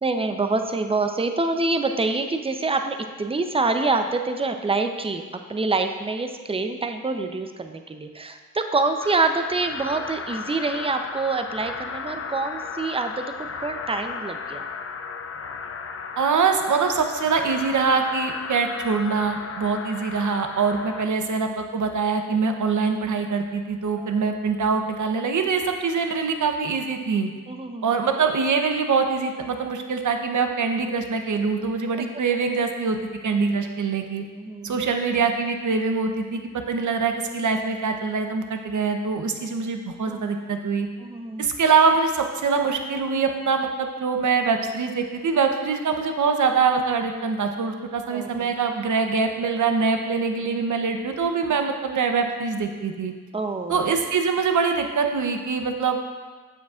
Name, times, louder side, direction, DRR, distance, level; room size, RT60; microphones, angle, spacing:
voice 1, 0.0-5.2 5.5-14.7 24.0-24.1 27.5-27.9 32.0-32.1 34.4-34.8 40.1-40.2 41.0-41.5 48.1-48.5 50.5-50.6 53.3-53.8, right 3 dB, 15° right, 6 dB, 0.7 m, -26 dB
sound 1, 9.0-21.1, left 5 dB, 40° left, 0.6 m, -35 dB
voice 2, 16.2-27.3 27.8-33.0 33.2-34.2 34.6-36.4 36.7-40.9 41.4-53.1 53.7-56.0, right 5 dB, 60° right, 5 dB, 0.9 m, -24 dB
10.0 x 7.2 x 2.5 m, 1.4 s
supercardioid pair, 45°, 35 cm